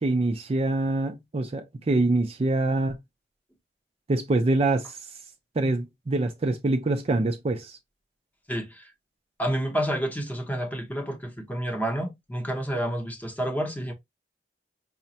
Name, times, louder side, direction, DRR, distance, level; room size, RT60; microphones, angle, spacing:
voice 1, 0.0-2.9 4.1-5.0 5.6-7.8, right 2 dB, 35° right, 0.4 m, -25 dB
voice 2, 8.5-8.8 9.4-13.9, right 1 dB, 10° left, 0.8 m, -29 dB
4.9 x 2.1 x 2.7 m
head